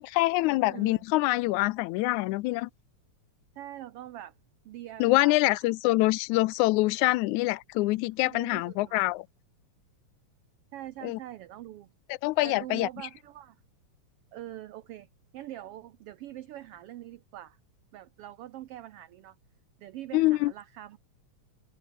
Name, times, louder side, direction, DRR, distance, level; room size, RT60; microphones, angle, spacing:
voice 1, 0.0-2.7 5.0-9.2 11.0-11.2 12.2-12.9 20.1-20.5, left 20 dB, 85° left, 2.0 m, -25 dB
voice 2, 0.6-1.0 3.6-4.3 4.6-5.6 8.2-9.1 10.7-11.9 12.4-13.6 14.3-15.1 15.3-17.6 17.9-19.4 19.8-21.0, right 13 dB, 75° right, 1.4 m, -43 dB
omnidirectional pair, 3.4 m